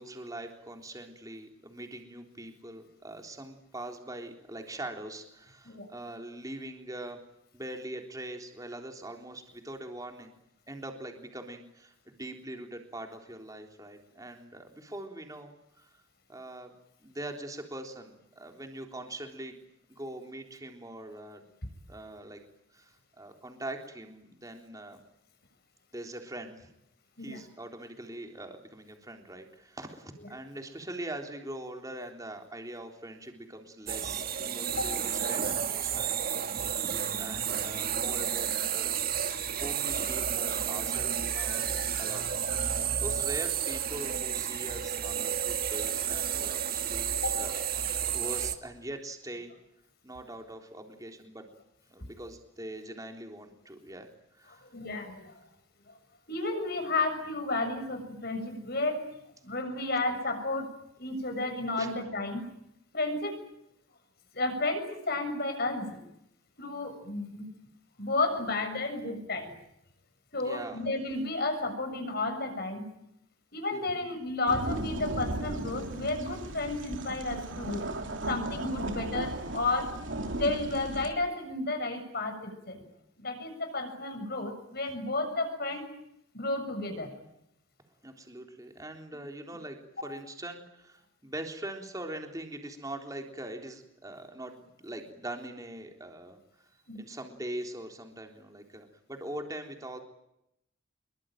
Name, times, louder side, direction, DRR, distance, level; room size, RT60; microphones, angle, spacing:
voice 1, 0.0-7.2 7.5-10.3 10.7-15.9 16.3-16.7 17.0-19.6 19.9-21.4 21.9-22.4 22.7-25.0 25.9-26.7 27.2-36.2 36.5-39.0 39.6-41.7 42.0-42.4 43.0-47.6 48.1-49.5 50.0-51.5 51.9-54.1 54.4-54.6 61.8-61.9 70.4-70.8 73.7-74.0 88.0-96.4 97.0-100.0, right 1 dB, 15° right, 3 dB, 3.6 m, -42 dB
sound 1, 33.9-48.6, right 8 dB, 45° right, 1.8 m, -31 dB
voice 2, 41.3-42.8 47.1-47.4 54.6-55.3 55.9-56.0 56.3-59.0 59.4-60.7 61.0-62.5 62.9-63.3 64.3-66.0 66.6-67.5 68.0-69.5 70.3-72.8 73.5-77.9 78.3-79.9 80.4-82.8 83.2-85.9 86.3-87.1 90.0-90.1 96.9-97.0, left 2 dB, 50° left, 6 dB, 7.0 m, -32 dB
sound 2, 74.4-81.1, right 1 dB, 65° right, 3.2 m, -36 dB
26.5 x 23.0 x 9.2 m, 0.82 s
head